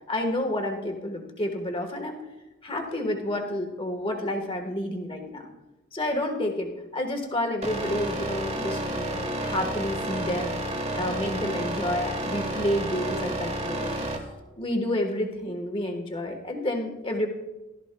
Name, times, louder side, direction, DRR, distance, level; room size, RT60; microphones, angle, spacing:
voice 1, 0.1-2.2 2.6-5.5 5.9-10.5 10.9-14.0 14.6-17.3, left 1 dB, 25° left, 3 dB, 1.3 m, -29 dB
sound 1, 7.6-14.2, right 1 dB, 30° right, 1.2 m, -30 dB
15.0 x 13.0 x 2.2 m, 1.1 s
head